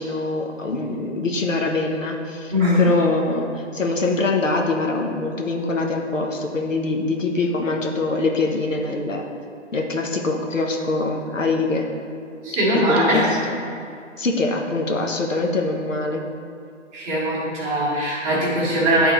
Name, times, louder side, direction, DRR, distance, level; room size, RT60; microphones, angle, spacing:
voice 1, 0.0-2.5 2.8-9.2 9.7-11.9 12.7-13.6 14.2-16.2, left 3 dB, 85° left, 1 dB, 1.0 m, -24 dB
voice 2, 2.5-2.9 12.4-13.3 16.9-19.1, equal, 15° right, -7 dB, 1.3 m, -20 dB
10.5 x 3.6 x 3.0 m, 2.5 s
figure-of-eight pair, 135°, 37 cm